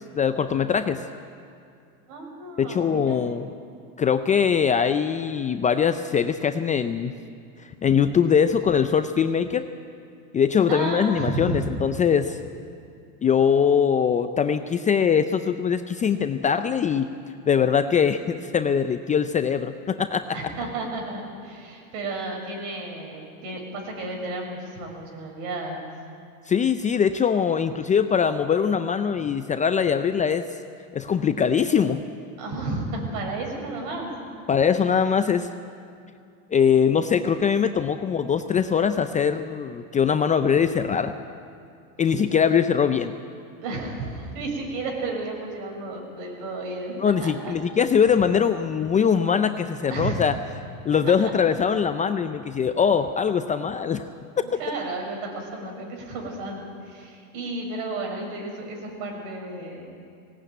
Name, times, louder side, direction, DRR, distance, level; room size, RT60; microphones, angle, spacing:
voice 1, 0.1-1.0 2.6-3.5 4.0-7.1 7.6-9.7 10.3-12.4 13.2-17.1 17.5-20.3 26.5-30.5 30.9-32.0 34.5-35.5 36.5-41.1 42.0-43.1 47.0-50.3 50.8-54.1, left 7 dB, 20° left, 9 dB, 0.5 m, -22 dB
voice 2, 2.1-3.2 10.7-11.7 20.3-25.9 32.4-34.1 42.1-42.5 43.6-46.9 47.2-47.5 49.9-50.3 54.4-59.8, right 2 dB, 65° right, 1 dB, 7.1 m, -32 dB
18.5 x 18.0 x 9.2 m, 2.4 s
supercardioid pair, 125°, 43 cm